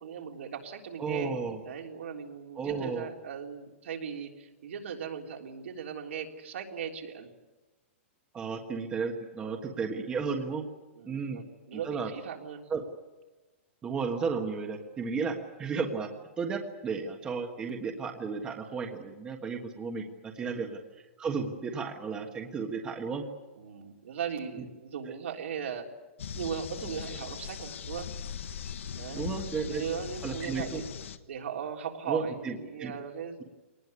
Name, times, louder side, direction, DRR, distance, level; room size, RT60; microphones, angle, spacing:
voice 1, 0.0-7.3 9.7-9.8 11.0-12.6 20.4-20.7 23.6-25.9 26.3-28.1 28.9-30.8 31.3-33.4, right 7 dB, 70° right, 2 dB, 3.6 m, -38 dB
voice 2, 1.0-1.6 2.6-3.1 8.3-10.6 11.0-11.4 11.7-12.1 12.7-12.8 13.8-16.1 16.4-20.8 21.2-23.3 29.1-29.8 30.2-30.8 32.1-32.9, right 5 dB, 10° right, 3 dB, 1.5 m, -33 dB
sound 1, 26.2-31.2, left 7 dB, 70° left, 1.4 m, -39 dB
22.5 x 19.5 x 9.7 m, 1.2 s
hypercardioid pair, 175°, 7 cm